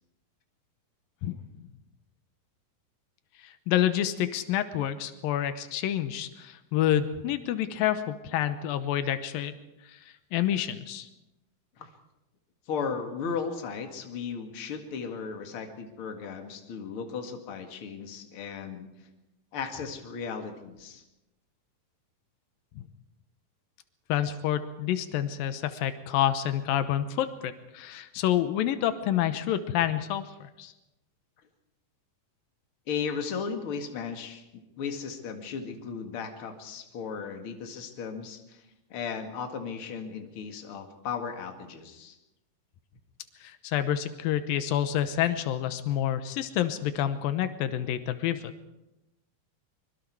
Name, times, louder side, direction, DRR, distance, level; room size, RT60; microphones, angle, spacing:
voice 1, 3.4-9.5 9.9-10.0 10.3-11.1 22.8-22.9 24.1-30.7 43.4-48.5, left 11 dB, 85° left, 11 dB, 2.7 m, -28 dB
voice 2, 12.7-18.9 19.5-21.0 32.9-38.6 38.9-42.2, left 6 dB, 45° left, 5 dB, 2.4 m, -36 dB
24.5 x 23.5 x 4.8 m, 0.97 s
omnidirectional pair, 4.1 m